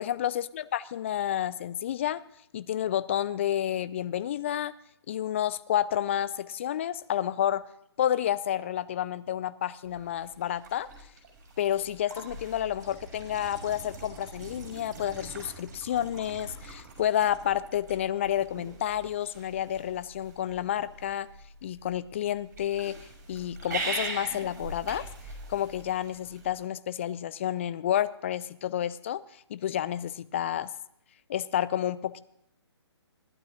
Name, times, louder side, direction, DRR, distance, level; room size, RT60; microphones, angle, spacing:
voice 1, 0.0-2.2 2.5-4.8 5.1-7.7 8.0-10.9 11.6-21.3 21.6-23.0 23.3-25.1 25.5-29.2 29.5-30.7 31.3-32.2, left 11 dB, 25° left, 16 dB, 0.4 m, -30 dB
sound 1, 9.8-26.6, right 3 dB, 35° right, 5.7 m, -42 dB
17.0 x 11.5 x 3.8 m, 0.76 s
figure-of-eight pair, 135°, 14 cm